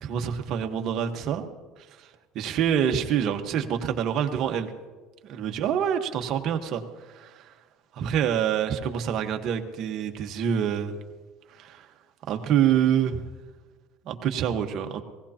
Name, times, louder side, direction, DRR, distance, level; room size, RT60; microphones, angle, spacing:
voice 1, 0.0-1.5 2.3-4.7 5.3-6.8 7.1-7.5 7.9-11.0 11.5-11.9 12.3-13.2 14.0-15.0, right 9 dB, 50° right, 5 dB, 1.3 m, -26 dB
18.5 x 17.0 x 2.9 m, 1.3 s
supercardioid pair, 115°, 0 cm